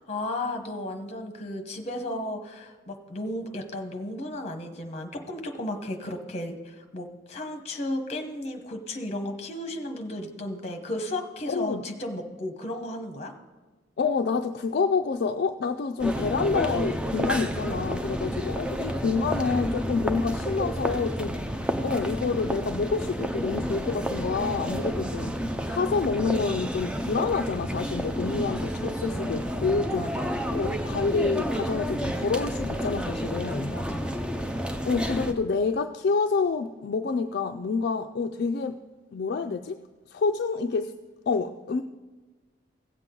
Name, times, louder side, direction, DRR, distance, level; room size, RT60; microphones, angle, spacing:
voice 1, 0.1-13.3 18.2-18.5 24.8-25.4 30.0-30.4 33.7-34.1, left 1 dB, 35° left, 5 dB, 1.1 m, -34 dB
voice 2, 11.5-11.8 14.0-21.4 21.8-25.3 25.7-30.1 30.5-33.7 34.8-38.8 39.1-39.8 40.1-40.9 41.3-41.8, left 4 dB, 55° left, 5 dB, 0.4 m, -28 dB
sound 1, 16.0-35.3, equal, 5° right, 0.5 m, -30 dB
16.5 x 7.5 x 3.8 m, 1.3 s
head